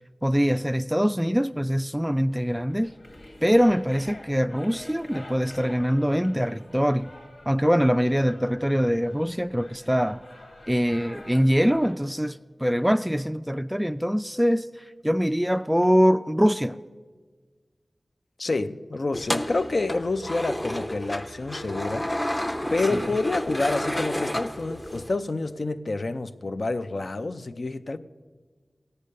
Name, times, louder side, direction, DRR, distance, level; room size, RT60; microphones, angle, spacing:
voice 1, 0.2-2.9 3.4-7.1 7.5-10.2 10.7-14.7 15.0-16.8 22.9-23.0, equal, 5° right, 0.3 m, -23 dB
sound 1, 2.7-11.9, left 1 dB, 85° left, 2.3 m, -47 dB
voice 2, 18.4-22.1 22.7-28.0, left 3 dB, 65° left, 0.5 m, -28 dB
sound 2, 19.1-25.2, left 1 dB, 20° left, 0.7 m, -31 dB
16.5 x 8.3 x 6.5 m
cardioid pair, 45°, 0 cm